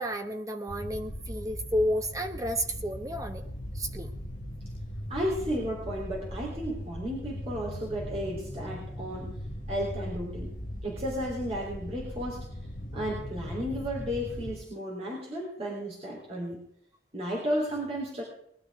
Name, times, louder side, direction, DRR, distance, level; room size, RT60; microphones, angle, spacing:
voice 1, 0.0-3.4 3.7-4.1, equal, 20° right, 6 dB, 1.1 m, -31 dB
sound 1, 0.7-14.5, equal, 45° left, 1.5 m, -39 dB
voice 2, 5.1-9.3 9.7-10.5 10.8-12.5 12.9-16.6 17.1-18.2, equal, 35° right, -4 dB, 3.6 m, -33 dB
20.5 x 12.0 x 3.7 m, 0.72 s
head